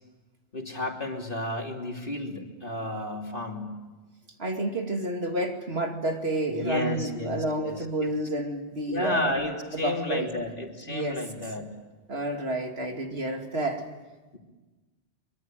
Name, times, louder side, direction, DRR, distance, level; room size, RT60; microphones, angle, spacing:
voice 1, 0.5-3.8 6.5-8.1 8.9-11.7, left 1 dB, 50° left, 1 dB, 3.3 m, -32 dB
voice 2, 4.4-9.3 9.7-10.3 10.9-11.2 12.1-13.8, right 1 dB, 60° right, 3 dB, 2.8 m, -30 dB
24.0 x 23.5 x 9.1 m, 1.2 s
omnidirectional pair, 1.2 m